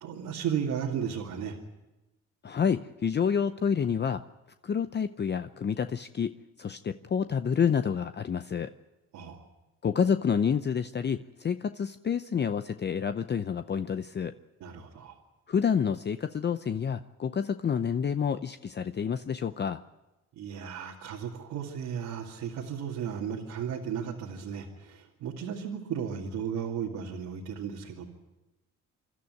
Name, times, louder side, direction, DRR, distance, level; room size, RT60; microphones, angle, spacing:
voice 1, 0.0-1.6 9.1-9.4 14.6-15.1 20.4-28.1, right 8 dB, 85° right, -1 dB, 2.5 m, -35 dB
voice 2, 2.4-4.2 4.6-6.3 6.6-8.7 9.8-14.3 15.5-19.8, left 7 dB, 35° left, 10 dB, 0.7 m, -28 dB
27.0 x 12.5 x 9.5 m, 1.1 s
cardioid pair, 90°, 30 cm